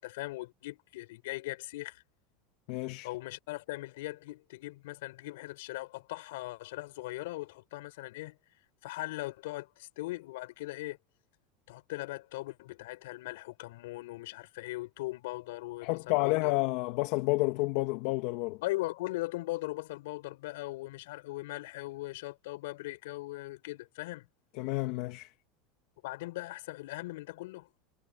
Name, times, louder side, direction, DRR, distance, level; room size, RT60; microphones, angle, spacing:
voice 1, 0.0-2.0 3.0-8.4 8.8-11.0 11.7-16.5 18.6-24.2 26.0-27.7, left 19 dB, 80° left, 6.5 m, -39 dB
voice 2, 2.7-3.1 15.8-18.6 24.6-25.3, left 22 dB, 65° left, 2.1 m, -30 dB
supercardioid pair, 130°, 0 cm